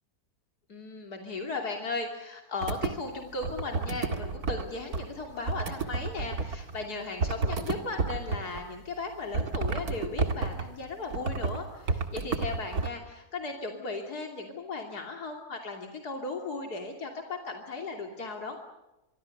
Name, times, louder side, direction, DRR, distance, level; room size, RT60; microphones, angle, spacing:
voice 1, 0.7-18.6, left 3 dB, 85° left, 3 dB, 3.4 m, -36 dB
sound 1, 2.6-2.9 3.4-4.7 4.9-6.9 7.2-8.7 9.3-10.7 11.1-11.6 11.9-12.9, right 4 dB, 75° right, 2.5 m, -31 dB
26.0 x 24.5 x 6.6 m, 0.99 s
omnidirectional pair, 1.6 m